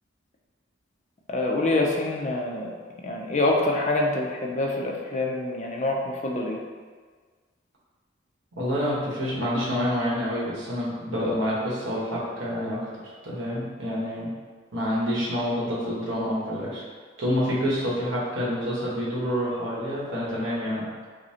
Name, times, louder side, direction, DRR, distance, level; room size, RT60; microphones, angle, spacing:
voice 1, 1.3-2.7 3.0-6.6, left 2 dB, 35° left, 0 dB, 0.4 m, -26 dB
voice 2, 8.6-14.3 14.7-16.8 17.2-20.9, equal, 85° right, -6 dB, 1.1 m, -28 dB
5.1 x 2.1 x 2.8 m, 1.5 s
head